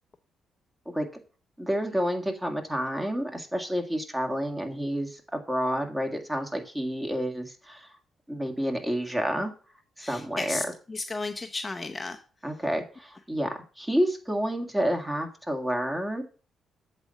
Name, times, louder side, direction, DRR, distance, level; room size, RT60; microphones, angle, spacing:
voice 1, 1.6-8.0 8.3-9.5 10.0-10.6 12.4-16.2, equal, 15° right, 4 dB, 2.0 m, -29 dB
voice 2, 10.0-12.2, left 3 dB, 30° left, 6 dB, 0.7 m, -34 dB
8.0 x 4.2 x 6.4 m, 0.38 s
hypercardioid pair, 50°, 0 cm